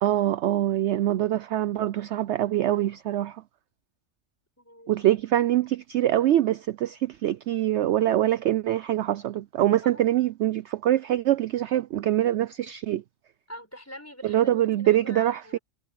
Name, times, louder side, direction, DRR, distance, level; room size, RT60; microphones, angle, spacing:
voice 1, 0.0-3.4 4.9-13.0 14.2-15.6, right 13 dB, 65° right, 0.8 m, -24 dB
voice 2, 4.6-5.1 5.5-5.7 9.8-10.1 13.5-15.6, equal, 10° left, 5.0 m, -44 dB
omnidirectional pair, 1.4 m